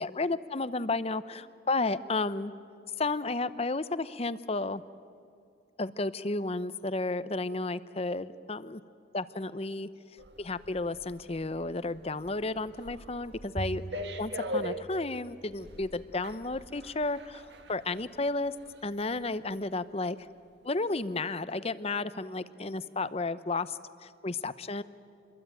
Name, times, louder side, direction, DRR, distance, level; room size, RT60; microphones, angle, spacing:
voice 1, 0.0-2.5 3.0-4.8 5.8-8.8 9.1-9.9 10.4-13.8 14.2-18.5 18.8-20.3 20.6-24.8, left 3 dB, 30° left, 14 dB, 0.7 m, -32 dB
sound 1, 10.2-19.2 19.6-19.8, equal, 60° right, 1.7 m, -42 dB
Bowed string instrument, 13.6-16.1, right 1 dB, 25° right, 0.6 m, -42 dB
27.0 x 22.0 x 9.2 m, 2.4 s
head